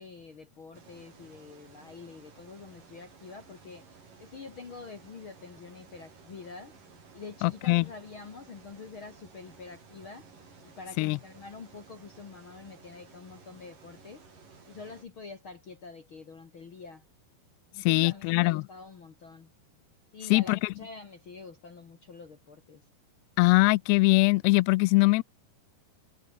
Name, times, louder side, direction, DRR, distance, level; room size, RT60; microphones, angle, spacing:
voice 1, 0.0-6.8 7.1-10.3 10.6-14.2 14.7-17.0 17.7-19.5 20.1-22.9, left 4 dB, 45° left, 1.9 m, -46 dB
sound 1, 0.7-15.0, right 5 dB, 50° right, 7.1 m, -55 dB
voice 2, 7.4-7.8 11.0-11.2 17.9-18.6 20.3-20.6 23.4-25.2, left 23 dB, 85° left, 2.6 m, -22 dB
omnidirectional pair, 4.8 m